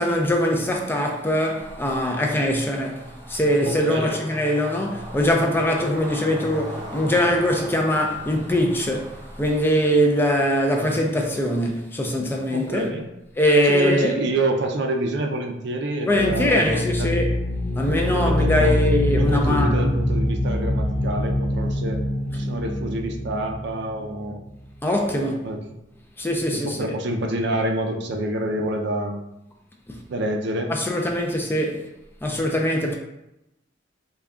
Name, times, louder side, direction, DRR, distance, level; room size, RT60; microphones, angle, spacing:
voice 1, 0.0-12.9 13.4-14.2 16.1-17.3 17.7-19.9 24.8-25.5 26.2-26.8 30.7-31.8 32.2-33.0, equal, 10° left, 0.3 m, -22 dB
sound 1, 1.4-11.7, equal, 20° right, 0.7 m, -40 dB
voice 2, 12.5-13.0 13.7-17.1 18.0-18.8 19.1-22.0 22.3-24.4 25.4-25.6 26.5-29.2 30.1-30.7, right 1 dB, 60° right, 0.5 m, -27 dB
sound 2, 16.2-24.8, left 1 dB, 50° left, 0.8 m, -25 dB
3.4 x 2.2 x 3.6 m
head